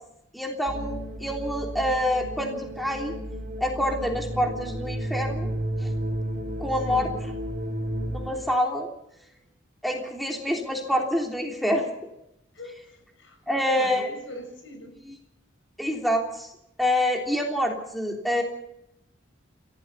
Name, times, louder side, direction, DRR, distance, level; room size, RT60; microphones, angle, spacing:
voice 1, 0.3-3.1 3.6-5.5 5.8-5.9 6.6-7.1 8.1-8.9 9.8-11.9 13.5-14.1 15.1-15.2 15.8-16.5 16.8-18.4, equal, ahead, 2 dB, 3.3 m, -26 dB
sound 1, 0.7-8.3, equal, 40° right, 6.5 m, -32 dB
voice 2, 6.8-7.2 9.2-9.3 12.5-15.0, left 1 dB, 70° left, 6 dB, 6.6 m, -41 dB
29.0 x 16.5 x 5.7 m, 0.82 s
head